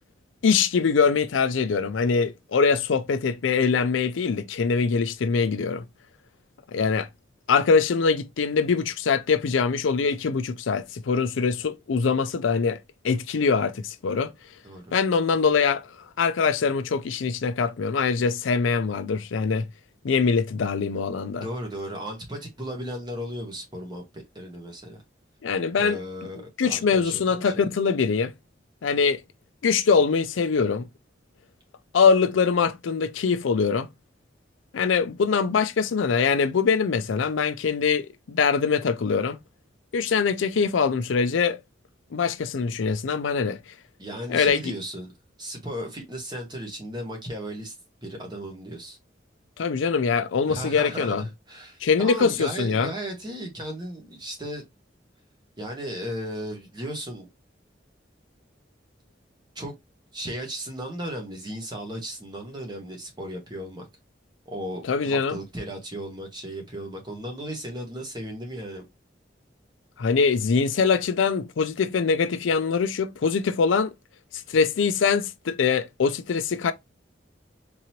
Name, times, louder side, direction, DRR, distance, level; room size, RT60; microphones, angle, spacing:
voice 1, 0.4-5.8 6.7-7.1 7.5-12.8 13.0-14.3 14.9-15.9 16.2-19.6 20.0-21.5 25.4-26.0 26.6-28.3 28.8-29.2 29.6-30.9 31.9-33.9 34.7-39.4 39.9-41.6 42.1-43.6 44.3-44.7 49.6-51.2 51.8-52.9 64.8-65.4 70.0-73.9 74.5-76.7, left 5 dB, 90° left, 0.4 m, -23 dB
voice 2, 21.3-25.0 25.8-27.7 44.0-45.1 45.4-47.7 48.0-49.0 50.5-54.6 55.6-57.3 59.5-59.7 60.1-63.9 64.4-68.8, equal, 25° right, 1.3 m, -35 dB
3.8 x 3.0 x 2.8 m
head